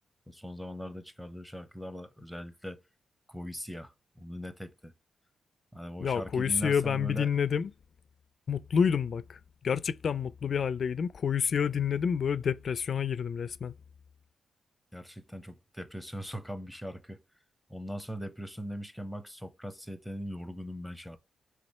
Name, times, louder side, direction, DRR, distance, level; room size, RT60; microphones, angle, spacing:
voice 1, 0.3-2.8 3.3-4.9 5.7-7.3 14.9-17.2 17.7-21.2, equal, ahead, 0.7 m, -40 dB
voice 2, 6.0-7.7 8.5-13.7, left 7 dB, 60° left, 0.4 m, -29 dB
3.4 x 3.1 x 4.2 m
cardioid pair, 95°, 0 cm